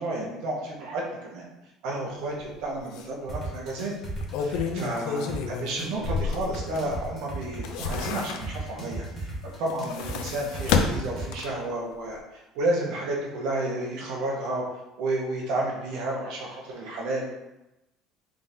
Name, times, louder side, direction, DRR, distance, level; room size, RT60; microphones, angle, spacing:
voice 1, 0.0-1.5 1.8-3.9 4.4-14.7 15.0-17.3, right 2 dB, 70° right, -1 dB, 1.0 m, -31 dB
sound 1, 2.4-2.5 2.9-3.0 4.0-7.0 7.4-8.8 9.6-11.7 12.1-12.2, left 5 dB, 75° left, 0.4 m, -30 dB
sound 2, 3.3-11.3, right 2 dB, 15° left, 1.2 m, -36 dB
3.7 x 3.6 x 2.7 m, 0.95 s
cardioid pair, 140°, 0 cm